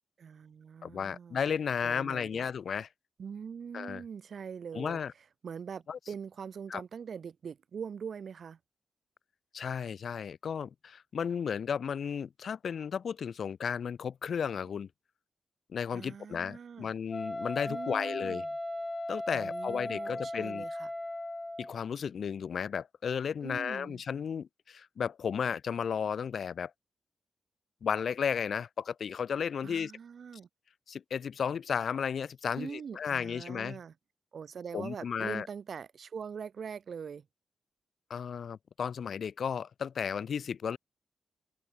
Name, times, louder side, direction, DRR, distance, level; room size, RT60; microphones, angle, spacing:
voice 1, 0.2-1.4 1.8-2.4 3.2-5.0 5.4-8.6 15.9-16.9 17.7-18.5 19.3-20.9 23.4-24.0 29.6-30.5 32.5-33.9 34.3-37.3, right 6 dB, 65° right, 0.7 m, -43 dB
voice 2, 0.8-2.9 3.7-4.0 4.7-5.1 5.9-6.0 6.7-6.8 9.5-14.9 15.7-18.4 19.1-20.6 21.6-26.7 27.8-29.9 30.9-33.8 34.7-35.5 38.1-40.8, left 7 dB, 70° left, 0.4 m, -34 dB
Wind instrument woodwind instrument, 17.1-21.8, left 1 dB, 15° left, 0.9 m, -37 dB
cardioid pair, 75°, 0 cm